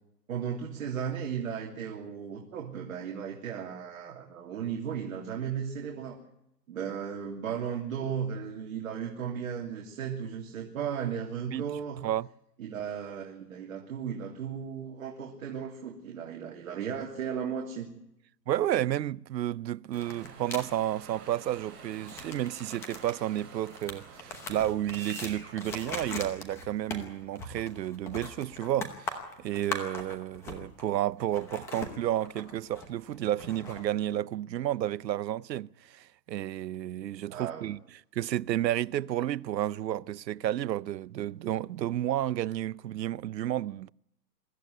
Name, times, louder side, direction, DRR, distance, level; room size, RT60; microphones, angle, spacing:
voice 1, 0.3-6.2 6.7-12.0 12.6-17.9 37.3-37.7, right 7 dB, 50° right, 3.1 m, -35 dB
voice 2, 18.5-37.8 38.1-43.9, right 12 dB, 80° right, 0.7 m, -31 dB
sound 1, 19.9-20.6 21.9-30.9 31.2-33.8, left 3 dB, 5° left, 0.9 m, -41 dB
sound 2, 19.9-25.6, right 6 dB, 25° right, 8.0 m, -48 dB
23.5 x 14.0 x 9.4 m
hypercardioid pair, 170°, 50 cm